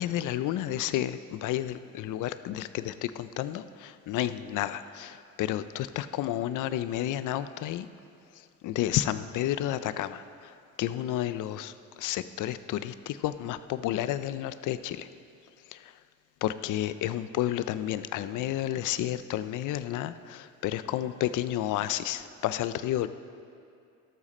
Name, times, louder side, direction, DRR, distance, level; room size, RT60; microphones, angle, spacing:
voice 1, 0.0-3.6 4.1-5.1 5.4-7.9 8.6-10.2 10.8-11.7 12.0-12.9 13.2-15.0 16.4-20.1 20.6-23.1, left 13 dB, 85° left, 13 dB, 0.6 m, -30 dB
12.5 x 12.5 x 4.2 m, 2.5 s
cardioid pair, 90°, 30 cm